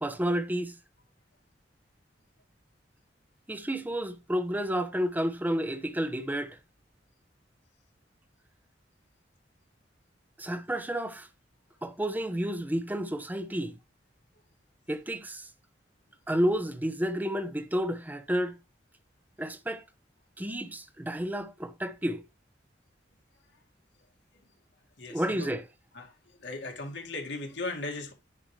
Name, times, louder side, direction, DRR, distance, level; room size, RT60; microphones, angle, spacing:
voice 1, 0.0-0.7 3.5-6.6 10.4-11.3 11.8-13.7 14.9-15.5 16.3-18.5 19.4-19.8 20.4-22.2 25.1-25.7, equal, 10° right, 0.8 m, -30 dB
voice 2, 25.0-25.5 25.9-26.1 26.4-28.1, left 2 dB, 70° left, 2.1 m, -37 dB
10.0 x 4.8 x 3.2 m
head